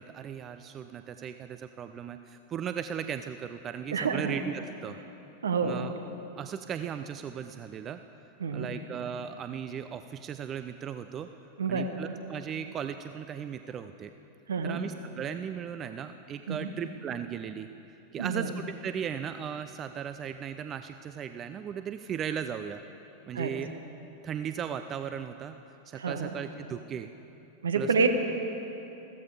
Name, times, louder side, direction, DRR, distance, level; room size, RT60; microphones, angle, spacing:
voice 1, 0.0-5.0 5.6-5.9 6.4-8.0 8.5-11.3 11.7-14.1 14.6-17.7 18.1-22.8 23.3-23.7 24.2-25.6 25.9-27.1 27.8-28.1, right 8 dB, 30° right, 10 dB, 0.4 m, -37 dB
voice 2, 3.9-4.4 5.4-5.8 8.4-8.7 11.6-11.9 14.5-14.8 16.5-16.7 18.2-18.5 23.3-23.5 25.9-26.3 27.6-28.1, right 5 dB, 70° right, 7 dB, 1.1 m, -28 dB
15.0 x 14.0 x 4.9 m, 3.0 s
figure-of-eight pair, 90°, 0 cm